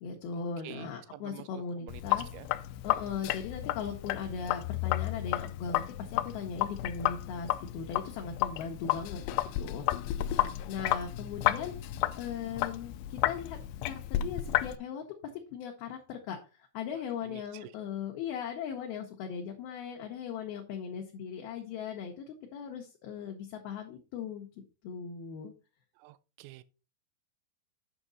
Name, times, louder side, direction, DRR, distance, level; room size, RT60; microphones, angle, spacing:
voice 1, 0.0-2.3 2.8-5.9 6.1-9.2 9.6-9.9 10.7-11.7 12.2-13.6 13.8-15.0 15.3-16.4 16.7-24.5 24.8-25.5, left 7 dB, 70° left, 2.5 m, -38 dB
voice 2, 0.6-2.5 17.2-17.7 26.0-26.6, right 16 dB, 85° right, 2.8 m, -49 dB
Sink (filling or washing), 1.9-14.8, left 14 dB, 90° left, 2.4 m, -32 dB
9.1 x 6.1 x 4.0 m
omnidirectional pair, 5.4 m